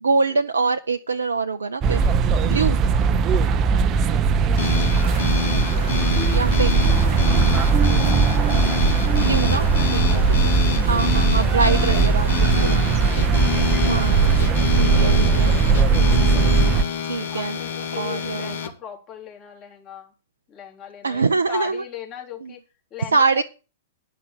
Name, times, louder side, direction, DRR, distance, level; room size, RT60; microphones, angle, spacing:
voice 1, 0.0-2.1 2.4-2.8 6.3-6.8 9.2-10.5 10.8-12.8 13.8-14.2 14.8-15.6 17.1-17.6 18.0-18.6 21.0-21.8 22.4-22.5 23.1-23.4, right 4 dB, 75° right, 7 dB, 0.6 m, -24 dB
sound 1, 1.8-16.8, right 5 dB, 30° right, 0.7 m, -19 dB
voice 2, 3.3-5.3 6.5-10.8 11.4-12.1 12.4-13.9 15.0-15.4 15.8-16.0 17.2-20.1 20.5-22.6 22.9-23.4, left 10 dB, 30° left, 0 dB, 3.3 m, -41 dB
sound 2, 4.6-18.7, left 7 dB, 60° left, 1.9 m, -27 dB
sound 3, 6.2-11.8 12.2-12.5 13.0-13.2, right 6 dB, ahead, 0.8 m, -36 dB
10.5 x 5.8 x 8.6 m, 0.33 s
figure-of-eight pair, 105°, 0 cm